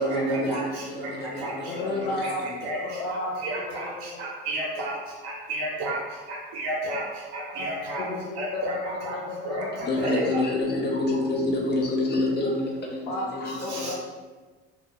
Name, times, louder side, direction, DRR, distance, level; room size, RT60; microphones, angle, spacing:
voice 1, 0.0-2.3 9.8-13.9, left 2 dB, 35° left, -1 dB, 0.6 m, -28 dB
voice 2, 1.7-2.4 2.7-4.2 7.5-7.7 8.0-9.7 10.1-10.3 13.1-13.9, left 2 dB, 90° left, -5 dB, 0.5 m, -33 dB
voice 3, 3.4-3.9 4.2-5.0 5.5-6.0 6.5-7.0 7.3-8.0 8.4-9.2 10.0-10.2 13.7-13.9, right 1 dB, 70° right, -4 dB, 0.7 m, -31 dB
2.3 x 2.1 x 2.9 m, 1.3 s
supercardioid pair, 85°, 30 cm